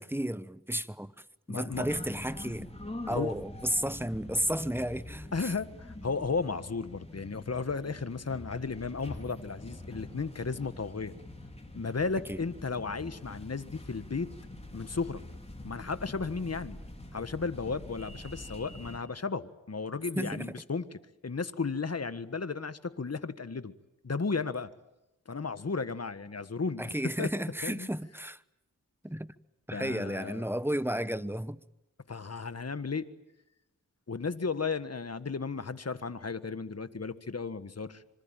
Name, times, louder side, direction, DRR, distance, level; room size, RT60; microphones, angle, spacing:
voice 1, 0.1-1.1 1.5-2.7 3.1-5.5 12.3-12.4 20.2-20.5 26.8-28.4 29.0-29.3 29.7-31.6, right 1 dB, 5° right, 1.0 m, -33 dB
voice 2, 1.5-1.9 3.1-3.3 5.3-11.1 11.7-14.3 14.7-15.2 15.6-16.8 17.1-23.7 24.0-24.7 25.2-27.3 27.6-27.9 29.7-30.4 32.1-33.1 34.1-38.0, left 4 dB, 45° left, 1.6 m, -34 dB
sound 1, 1.7-19.0, left 1 dB, 15° left, 4.6 m, -45 dB
26.0 x 24.5 x 9.1 m
cardioid pair, 50°, 35 cm